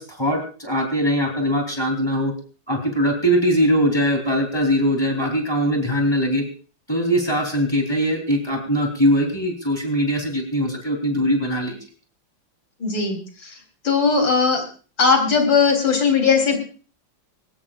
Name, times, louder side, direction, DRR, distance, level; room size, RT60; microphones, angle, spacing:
voice 1, 0.0-2.3 2.7-6.4 6.9-11.8, equal, 15° left, 3 dB, 3.4 m, -21 dB
voice 2, 12.8-13.6 13.8-14.6 15.0-16.6, left 5 dB, 85° left, 4 dB, 4.3 m, -18 dB
20.5 x 18.5 x 2.5 m, 0.38 s
omnidirectional pair, 2.0 m